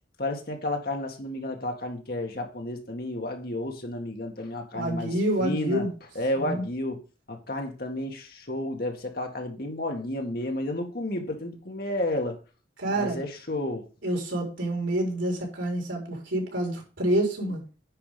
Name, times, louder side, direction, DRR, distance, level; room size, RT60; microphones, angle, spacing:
voice 1, 0.2-5.9 6.2-7.0 7.3-12.4 12.9-13.9, left 1 dB, 50° left, 2.0 m, -31 dB
voice 2, 4.7-5.9 6.3-6.6 12.8-13.2 14.0-17.6, right 1 dB, 75° right, 4.4 m, -28 dB
10.0 x 5.0 x 5.1 m
head